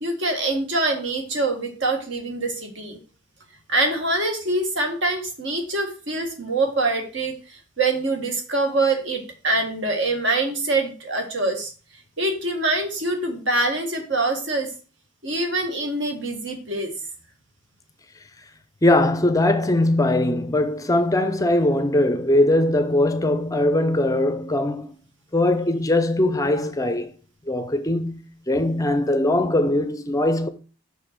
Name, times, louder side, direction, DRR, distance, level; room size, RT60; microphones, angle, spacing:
voice 1, 0.0-3.0 3.7-11.7 12.2-14.7 15.2-16.9, right 2 dB, 65° right, 1.8 m, -24 dB
voice 2, 18.8-24.9 25.3-27.1 27.5-28.2 28.5-30.5, left 1 dB, 15° left, 0.5 m, -20 dB
6.5 x 5.5 x 4.5 m
head